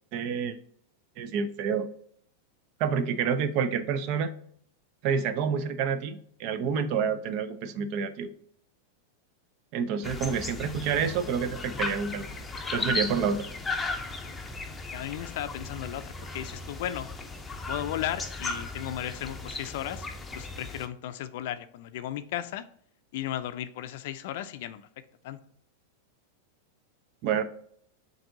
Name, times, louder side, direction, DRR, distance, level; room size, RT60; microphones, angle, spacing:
voice 1, 0.1-0.6 1.2-1.9 2.8-4.3 5.0-8.3 9.7-12.2 12.7-13.4 27.2-27.4, right 6 dB, 50° right, 13 dB, 0.5 m, -28 dB
sound 1, 10.0-20.9, left 3 dB, 15° left, 0.6 m, -36 dB
voice 2, 14.9-17.1 17.6-20.1 20.3-22.6 23.1-24.9 25.2-25.4, left 12 dB, 60° left, 12 dB, 0.4 m, -35 dB
7.1 x 2.6 x 2.6 m, 0.64 s
hypercardioid pair, 105°, 0 cm